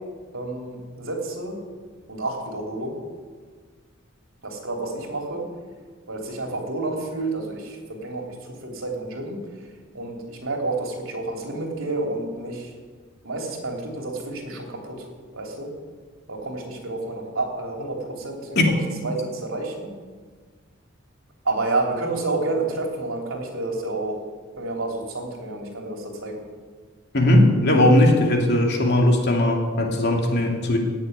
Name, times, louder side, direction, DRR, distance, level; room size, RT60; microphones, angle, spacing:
voice 1, 0.3-1.6 2.1-3.0 4.4-5.4 6.1-9.4 9.9-12.7 13.2-15.0 15.3-15.7 16.3-19.9 21.4-24.2 24.6-26.4, right 2 dB, 75° right, 0 dB, 3.3 m, -29 dB
voice 2, 27.1-30.8, left 1 dB, 55° left, 1 dB, 2.7 m, -18 dB
17.0 x 7.0 x 9.5 m, 1.5 s
head